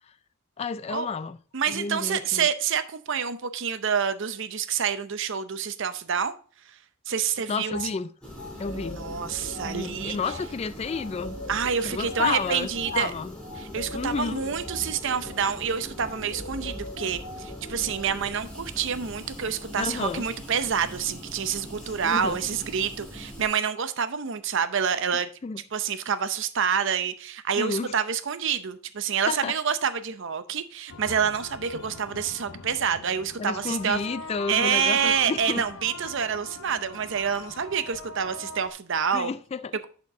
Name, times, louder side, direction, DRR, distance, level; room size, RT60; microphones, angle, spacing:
voice 1, 0.6-1.4 1.7-2.5 7.5-8.1 8.6-9.0 9.6-11.4 11.8-13.3 13.9-14.4 19.8-20.3 22.0-22.4 25.1-25.6 27.6-27.9 29.3-29.6 33.4-35.6 39.1-39.7, left 5 dB, 30° left, 0.3 m, -31 dB
voice 2, 1.5-6.3 7.1-7.9 8.7-10.2 11.5-13.1 13.6-25.3 25.7-34.0 34.5-39.3, right 7 dB, 60° right, 0.6 m, -27 dB
sound 1, 7.7-7.9 8.4-18.1, left 1 dB, 55° left, 2.1 m, -41 dB
sound 2, 8.2-23.5, equal, 5° left, 2.6 m, -42 dB
sound 3, 30.9-38.7, left 4 dB, 70° left, 0.6 m, -41 dB
10.5 x 4.4 x 3.5 m
head